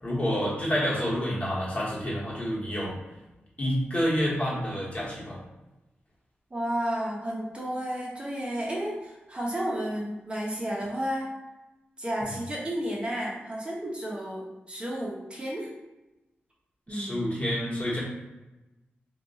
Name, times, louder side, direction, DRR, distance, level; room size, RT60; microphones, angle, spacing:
voice 1, 0.0-2.9 3.6-5.4 16.9-18.0, equal, 35° left, -6 dB, 1.2 m, -28 dB
voice 2, 6.5-11.3 12.0-15.7 16.9-17.2, equal, 25° right, -4 dB, 0.7 m, -32 dB
2.6 x 2.3 x 3.9 m, 1.0 s
wide cardioid pair, 90°, 4 cm